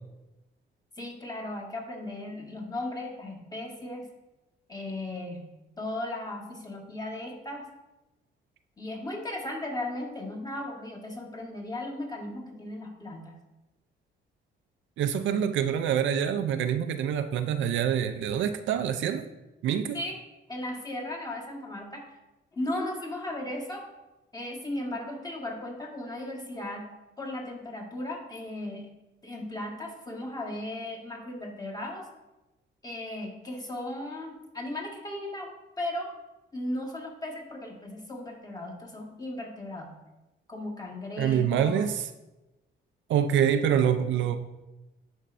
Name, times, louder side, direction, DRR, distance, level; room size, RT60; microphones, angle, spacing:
voice 1, 1.0-4.1 4.7-5.4 5.8-7.6 8.8-13.2 19.9-20.2 20.5-22.2 22.5-23.8 24.3-26.9 27.2-28.9 29.2-32.1 32.8-35.5 35.8-36.1 36.5-39.9 40.5-41.8, left 1 dB, 20° left, 0 dB, 1.4 m, -36 dB
voice 2, 15.0-19.3 19.6-20.0 41.2-42.1 43.1-44.4, right 9 dB, 75° right, 9 dB, 0.5 m, -26 dB
10.0 x 4.4 x 2.5 m, 1.0 s
cardioid pair, 90°, 20 cm